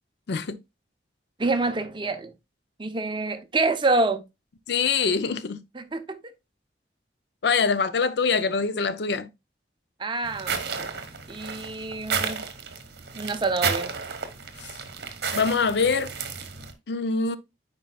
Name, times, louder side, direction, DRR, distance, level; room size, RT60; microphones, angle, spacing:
voice 1, 1.4-2.3 2.8-4.2 5.7-6.2 10.0-10.6 11.3-12.5 13.1-13.9, right 3 dB, 25° right, 0.7 m, -26 dB
voice 2, 4.7-5.6 7.4-9.3 14.6-14.7 15.3-16.1 16.9-17.4, left 5 dB, 65° left, 0.5 m, -24 dB
sound 1, 10.2-16.7, right 5 dB, 60° right, 1.1 m, -32 dB
9.2 x 4.4 x 2.3 m
head